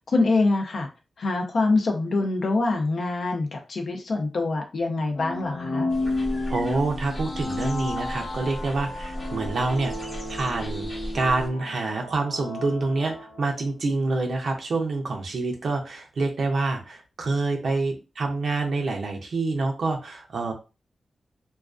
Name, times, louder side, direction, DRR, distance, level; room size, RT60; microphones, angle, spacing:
voice 1, 0.1-0.9 1.2-5.9, left 3 dB, 60° left, 3 dB, 0.5 m, -24 dB
sound 1, 5.1-13.8, left 2 dB, 85° left, 0.9 m, -33 dB
sound 2, 5.9-11.5, equal, 35° left, 0.8 m, -37 dB
voice 2, 6.5-10.9 11.1-20.5, right 3 dB, 60° right, 2 dB, 0.5 m, -27 dB
2.3 x 2.3 x 2.4 m, 0.30 s
wide cardioid pair, 160°, 0 cm